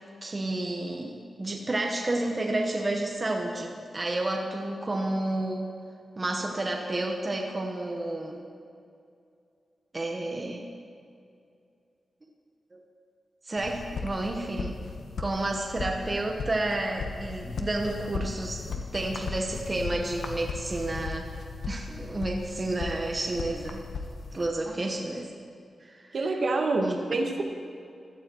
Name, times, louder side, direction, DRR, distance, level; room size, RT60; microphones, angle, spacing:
voice 1, 0.2-5.8 6.2-8.5 9.9-10.7 12.7-12.8 13.4-14.8 15.2-21.3 21.7-23.9 24.3-25.3 25.8-26.1 26.8-27.0, right 2 dB, 25° right, 1 dB, 1.1 m, -31 dB
sound 1, 13.6-24.5, left 4 dB, 75° left, 1.1 m, -37 dB
voice 2, 26.1-27.4, right 2 dB, 50° right, 2 dB, 1.7 m, -27 dB
16.5 x 12.0 x 4.6 m, 2.4 s
wide cardioid pair, 160°, 0 cm